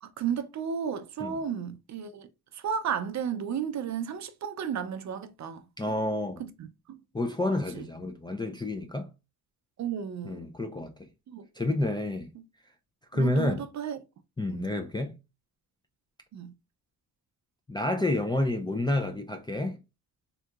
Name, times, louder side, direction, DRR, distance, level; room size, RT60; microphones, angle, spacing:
voice 1, 0.0-5.6 6.4-7.0 7.7-7.8 9.8-10.4 11.3-11.5 13.1-14.0 14.5-14.7 16.3-16.5, right 7 dB, 45° right, 0.5 m, -33 dB
voice 2, 5.8-6.4 7.1-9.1 10.2-10.9 11.6-12.3 13.1-13.6 14.4-15.2 17.7-19.8, left 1 dB, 10° left, 0.3 m, -29 dB
3.7 x 2.7 x 2.3 m
cardioid pair, 110°, 39 cm